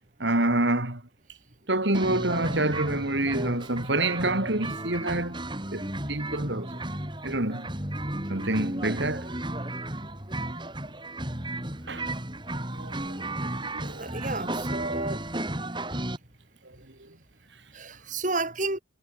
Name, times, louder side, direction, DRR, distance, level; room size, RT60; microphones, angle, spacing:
voice 1, 0.2-1.0 1.7-5.4 5.7-5.8 6.1-6.8 7.2-7.7 8.3-9.3 11.9-12.0 12.7-12.9 13.7-14.1, right 2 dB, 70° right, 4.3 m, -27 dB
sound 1, 1.9-16.2, right 1 dB, 25° right, 7.1 m, -34 dB
voice 2, 14.0-15.2 17.7-18.8, right 2 dB, 40° right, 4.7 m, -31 dB
head